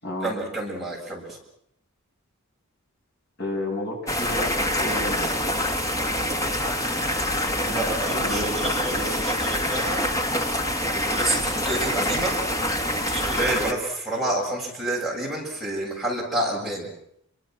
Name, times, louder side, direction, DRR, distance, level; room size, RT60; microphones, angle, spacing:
voice 1, 0.2-1.4 7.6-10.0 10.9-12.4 12.9-16.9, right 1 dB, ahead, -4 dB, 7.2 m, -29 dB
voice 2, 3.4-5.4 8.2-9.2, left 1 dB, 50° left, 0 dB, 7.0 m, -31 dB
sound 1, 4.1-13.7, left 1 dB, 15° left, 1.7 m, -26 dB
29.5 x 24.0 x 6.2 m, 0.72 s
head